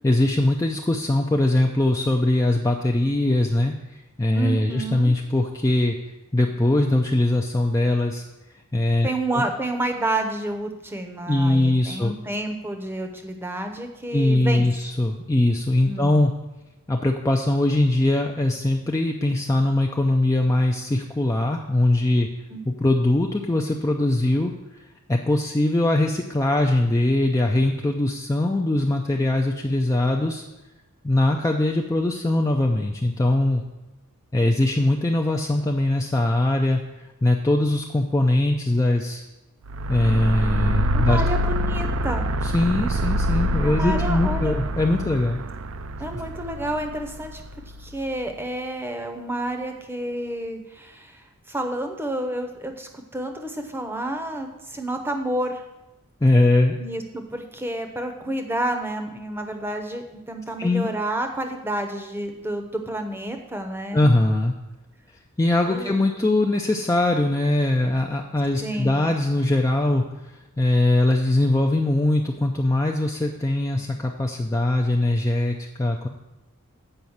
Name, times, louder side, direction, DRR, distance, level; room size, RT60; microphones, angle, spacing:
voice 1, 0.0-6.0 6.3-8.2 8.7-9.4 11.3-12.1 14.1-16.3 16.9-22.3 22.7-24.5 25.1-30.4 31.0-33.6 34.3-39.2 39.9-41.2 42.4-45.4 56.2-56.8 60.6-60.9 63.9-64.5 65.4-76.1, left 1 dB, 15° left, 2 dB, 0.4 m, -21 dB
voice 2, 4.3-5.1 9.0-14.7 15.8-16.2 22.5-22.6 40.9-42.3 43.6-44.6 46.0-47.4 47.8-51.2 51.5-55.6 56.8-64.0 65.7-65.9 68.6-69.1, right 1 dB, 10° right, 5 dB, 0.7 m, -29 dB
sound 1, 39.7-48.0, equal, 60° right, 0.4 m, -26 dB
7.9 x 5.1 x 7.1 m, 1.0 s
head